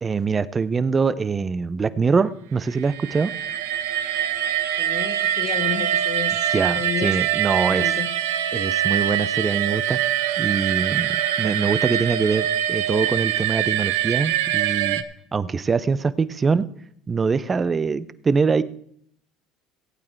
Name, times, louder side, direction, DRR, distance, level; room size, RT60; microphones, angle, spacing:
voice 1, 0.0-3.3 6.5-7.9 8.5-10.0 10.4-15.0 15.3-16.7 17.1-18.6, right 5 dB, 25° right, 0.7 m, -23 dB
sound 1, 2.8-15.0, right 11 dB, 90° right, 0.8 m, -24 dB
voice 2, 4.8-8.1 16.2-16.3, left 9 dB, 55° left, 1.2 m, -32 dB
16.0 x 8.7 x 4.5 m
supercardioid pair, 95°, 0 cm